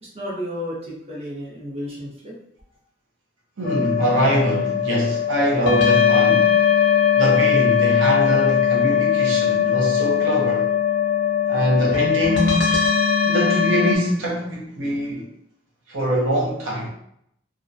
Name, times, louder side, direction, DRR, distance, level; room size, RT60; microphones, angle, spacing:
voice 1, 0.0-2.3, equal, 30° right, 0.7 m, -32 dB
sound 1, 3.6-14.0, left 8 dB, 65° left, 0.4 m, -20 dB
voice 2, 3.6-6.6 7.2-10.7 11.5-12.8 13.3-15.3 15.9-16.9, equal, 85° right, 0.6 m, -23 dB
2.3 x 2.1 x 2.6 m
head